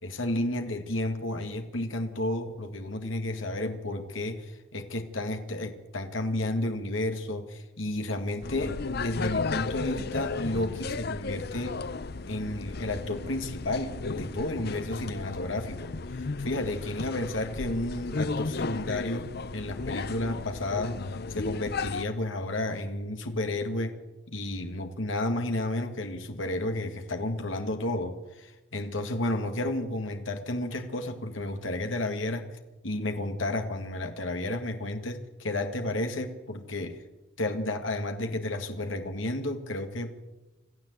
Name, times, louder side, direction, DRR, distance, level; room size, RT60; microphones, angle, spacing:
voice 1, 0.0-11.8 12.3-32.6 32.8-37.0 37.4-40.1, left 1 dB, 70° left, 6 dB, 1.9 m, -32 dB
sound 1, 8.4-22.0, left 4 dB, 50° left, 0.7 m, -34 dB
26.5 x 14.5 x 8.0 m, 1.1 s
head